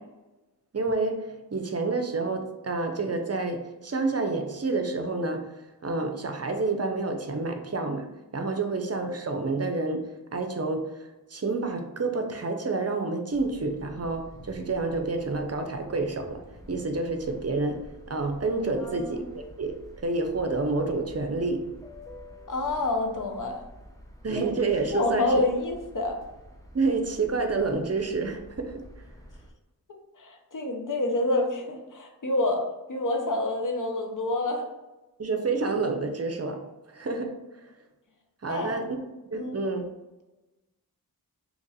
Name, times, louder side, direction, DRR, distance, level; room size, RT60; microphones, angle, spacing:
voice 1, 0.7-5.5 5.8-8.1 8.3-16.4 16.7-21.7 24.2-25.4 26.7-28.8 35.2-37.4 38.4-38.9 39.3-39.9, right 3 dB, 40° right, 5 dB, 0.5 m, -29 dB
sound 1, 13.3-29.5, equal, 10° left, 0.5 m, -48 dB
voice 2, 18.8-19.3 22.5-23.6 24.9-26.2 29.9-34.7 38.5-38.8 39.3-39.6, left 2 dB, 55° left, 3 dB, 0.7 m, -28 dB
2.9 x 2.4 x 4.0 m, 1.1 s
wide cardioid pair, 40°, 37 cm